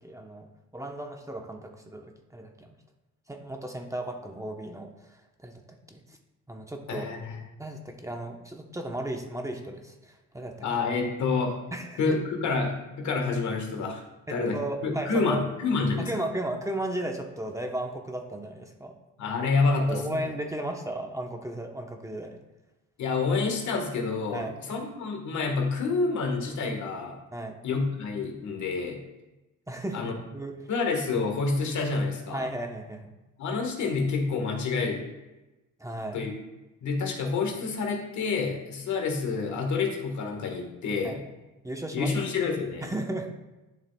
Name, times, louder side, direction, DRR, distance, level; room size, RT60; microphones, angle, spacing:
voice 1, 0.0-2.8 3.3-5.6 5.9-6.2 6.5-7.1 7.6-10.7 11.7-12.0 14.5-15.4 16.0-19.0 19.9-22.4 24.3-24.6 27.3-27.6 29.7-30.6 32.3-33.1 35.8-36.2 41.0-41.2 41.6-42.1 42.8-43.3, right 1 dB, 10° right, 3 dB, 0.9 m, -35 dB
voice 2, 6.9-7.4 10.6-11.6 12.0-14.0 14.3-16.1 19.2-20.3 23.0-27.2 27.6-29.0 29.9-30.1 30.7-32.5 33.4-35.1 36.1-36.3 36.8-41.2 41.9-42.9, left 4 dB, 70° left, 3 dB, 1.5 m, -28 dB
11.0 x 6.5 x 2.3 m, 1.1 s
cardioid pair, 90°, 30 cm